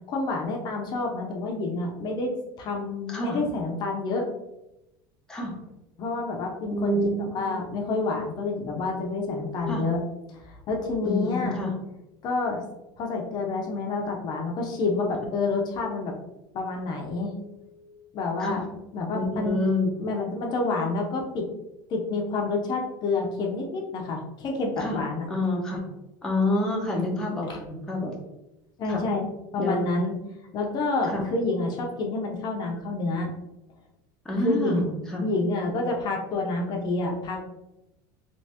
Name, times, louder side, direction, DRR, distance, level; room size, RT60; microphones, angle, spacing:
voice 1, 0.1-2.3 2.6-4.3 6.0-10.0 10.3-11.6 12.2-12.6 13.0-16.1 16.5-18.6 18.9-19.6 20.0-21.5 21.9-25.3 26.9-27.1 27.5-27.6 28.8-29.3 29.5-30.1 30.5-33.3 34.4-34.8 35.2-37.4, left 3 dB, 40° left, 1 dB, 0.6 m, -28 dB
voice 2, 6.7-7.6 9.7-9.8 11.0-11.7 18.4-18.6 19.1-19.9 24.8-25.0 25.3-25.8 26.2-28.1 28.9-29.0 29.6-29.9 31.1-31.2 34.2-35.3, left 1 dB, 5° left, -1 dB, 0.7 m, -27 dB
3.3 x 3.0 x 2.8 m, 0.91 s
supercardioid pair, 135°, 11 cm